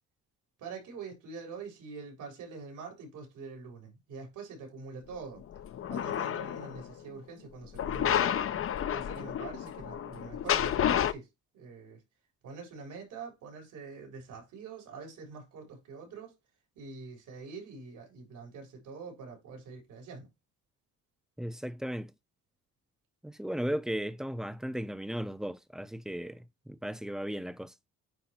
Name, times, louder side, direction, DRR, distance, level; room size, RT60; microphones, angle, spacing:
voice 1, 0.6-5.4 5.9-8.4 8.9-11.3 11.5-12.0 12.4-16.3 16.8-20.3, right 4 dB, 80° right, 3.7 m, -45 dB
sound 1, 5.5-6.9 7.7-11.1, left 10 dB, 45° left, 0.6 m, -30 dB
voice 2, 21.4-22.1 23.2-27.7, equal, ahead, 0.6 m, -36 dB
9.2 x 3.1 x 4.3 m
cardioid pair, 90°, 30 cm